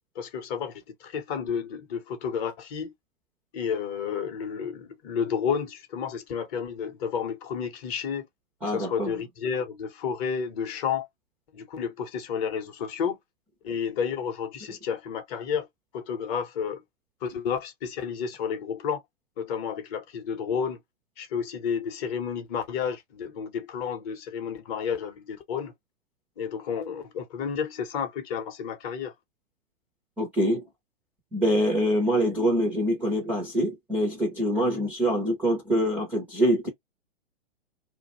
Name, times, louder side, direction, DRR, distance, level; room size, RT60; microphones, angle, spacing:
voice 1, 0.2-2.9 3.5-8.3 8.7-11.1 11.5-13.2 13.6-15.7 15.9-16.8 17.2-19.0 19.4-20.8 21.2-25.7 26.4-29.1 34.5-34.9, left 7 dB, 30° left, 0.7 m, -31 dB
voice 2, 8.6-9.1 30.2-30.6 31.3-36.7, equal, 5° right, 0.4 m, -25 dB
2.4 x 2.1 x 2.9 m
hypercardioid pair, 125°, 36 cm